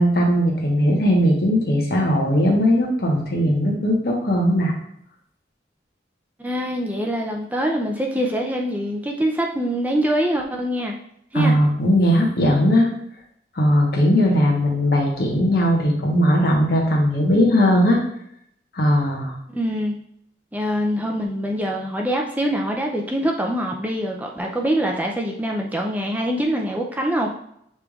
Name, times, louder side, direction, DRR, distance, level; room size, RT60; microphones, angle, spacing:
voice 1, 0.0-4.7 11.3-12.9 13.5-18.0 18.7-19.3, equal, 60° left, 0 dB, 1.1 m, -18 dB
voice 2, 6.4-10.9 11.3-11.6 19.5-20.0 20.5-27.3, equal, 10° right, 0 dB, 0.4 m, -24 dB
6.9 x 3.2 x 2.4 m, 0.73 s
head